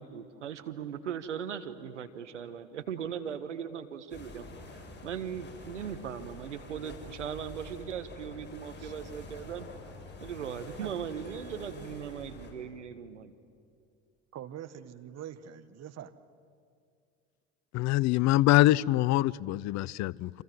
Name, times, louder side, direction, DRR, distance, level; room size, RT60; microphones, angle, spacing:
voice 1, 0.0-4.4 4.7-9.7 10.2-13.3, right 8 dB, 90° right, 10 dB, 1.4 m, -39 dB
sound 1, 4.1-12.5, left 2 dB, 30° left, 7.4 m, -47 dB
voice 2, 14.3-16.2, right 10 dB, 45° right, 11 dB, 1.5 m, -44 dB
voice 3, 17.7-20.4, left 16 dB, 50° left, 24 dB, 0.6 m, -24 dB
28.5 x 26.5 x 7.8 m, 2.3 s
hypercardioid pair, 65°, 35 cm